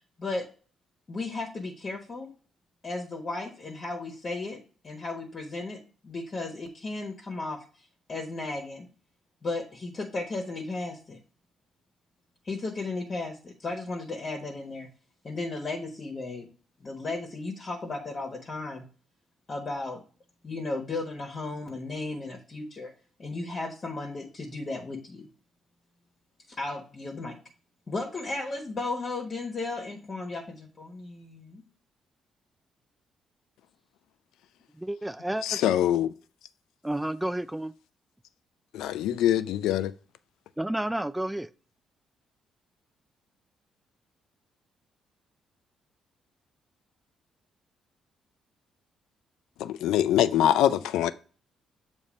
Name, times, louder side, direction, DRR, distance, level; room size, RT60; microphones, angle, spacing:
voice 1, 1.1-2.3 2.8-7.6 8.1-8.9 9.4-11.2 12.4-14.9 15.2-16.5 16.8-18.9 19.5-20.0 20.4-22.9 23.2-25.3 26.5-27.4 27.9-31.6, left 3 dB, 40° left, 1.2 m, -35 dB
voice 2, 34.7-35.7 36.8-37.7 40.6-41.5, right 1 dB, 5° right, 0.3 m, -31 dB
voice 3, 35.4-36.1 38.7-39.9 49.6-51.1, left 11 dB, 85° left, 0.3 m, -24 dB
7.1 x 2.7 x 5.1 m
cardioid pair, 90°, 0 cm